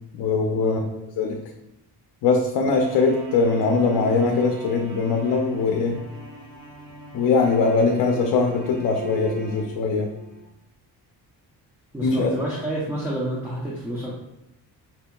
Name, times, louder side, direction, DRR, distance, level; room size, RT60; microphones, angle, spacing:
voice 1, 0.1-0.8 1.2-1.4 2.2-6.0 7.1-10.1 12.0-12.4, left 4 dB, 65° left, 2 dB, 0.5 m, -21 dB
sound 1, 2.7-10.4, right 6 dB, 45° right, 1.0 m, -38 dB
voice 2, 11.9-14.1, right 1 dB, 5° right, -5 dB, 0.6 m, -29 dB
5.6 x 2.7 x 2.3 m, 0.86 s
cardioid pair, 115°, 40 cm